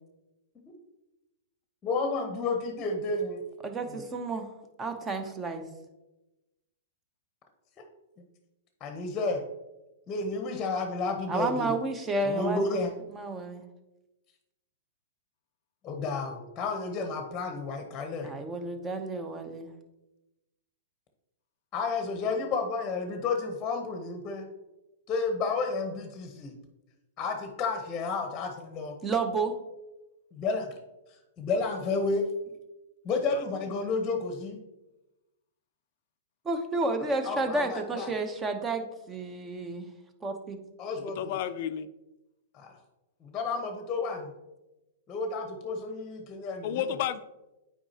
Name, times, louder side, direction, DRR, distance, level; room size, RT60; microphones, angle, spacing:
voice 1, 1.8-3.4 3.9-4.0 8.8-9.4 10.1-11.7 12.2-12.9 15.8-18.3 21.7-24.5 25.1-26.5 27.2-29.0 30.3-30.7 31.4-32.3 33.0-34.6 37.2-38.1 40.8-41.3 42.5-42.8 43.2-44.3 45.1-46.9, left 3 dB, 25° left, 5 dB, 0.9 m, -31 dB
voice 2, 3.6-4.5 4.8-5.7 11.3-12.8 13.1-13.6 18.2-19.7 29.0-29.6 36.4-39.9 40.2-40.6, right 3 dB, 20° right, 7 dB, 0.8 m, -31 dB
voice 3, 33.1-33.4 41.0-41.9 46.6-47.2, left 10 dB, 55° left, 12 dB, 0.4 m, -32 dB
8.6 x 4.8 x 2.8 m, 0.99 s
hypercardioid pair, 125°, 0 cm